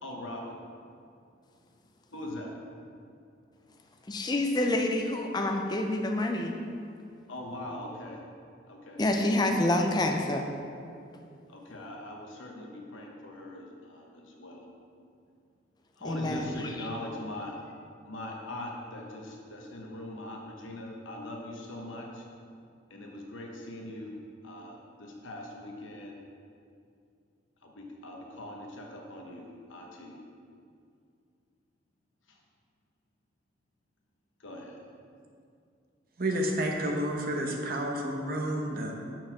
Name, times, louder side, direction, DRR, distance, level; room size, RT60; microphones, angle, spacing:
voice 1, 0.0-0.5 2.1-2.5 7.3-8.2 8.7-9.0 11.5-14.7 16.0-17.5 18.1-22.2 22.9-24.1 24.4-26.2 27.6-30.2 32.3-32.4 34.4-34.8, left 1 dB, 85° left, 0 dB, 1.1 m, -41 dB
voice 2, 4.1-6.6 9.0-10.4 16.0-16.9, left 1 dB, 20° left, 3 dB, 0.4 m, -27 dB
voice 3, 36.2-39.0, right 1 dB, 50° right, 1 dB, 0.8 m, -30 dB
6.1 x 4.4 x 5.9 m, 2.4 s
head